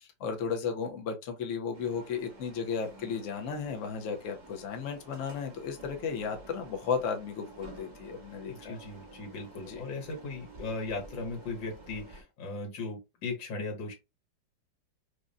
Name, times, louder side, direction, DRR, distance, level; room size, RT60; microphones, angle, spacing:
voice 1, 0.0-8.8 9.6-9.8, left 6 dB, 55° left, 0.9 m, -34 dB
sound 1, 1.7-12.2, right 2 dB, 30° right, 1.0 m, -51 dB
voice 2, 8.5-13.9, left 3 dB, 80° left, 1.8 m, -38 dB
4.9 x 2.2 x 2.6 m
omnidirectional pair, 2.0 m